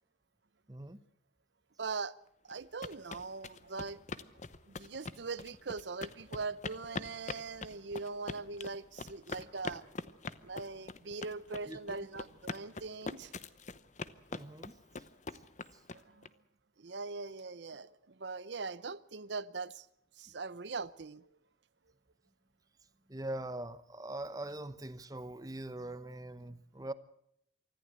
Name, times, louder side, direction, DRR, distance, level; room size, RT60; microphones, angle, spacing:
voice 1, 0.7-1.0 11.7-11.8 14.3-14.8 15.7-15.8 23.1-26.9, right 1 dB, 20° right, 0.9 m, -42 dB
voice 2, 1.8-2.1 2.5-4.0 4.8-9.8 10.4-13.3 16.2-16.3 16.8-17.9 18.2-19.8 20.2-21.2, right 4 dB, 65° right, 0.7 m, -41 dB
sound 1, 2.5-16.3, left 3 dB, 40° left, 0.8 m, -43 dB
24.5 x 14.5 x 8.2 m
head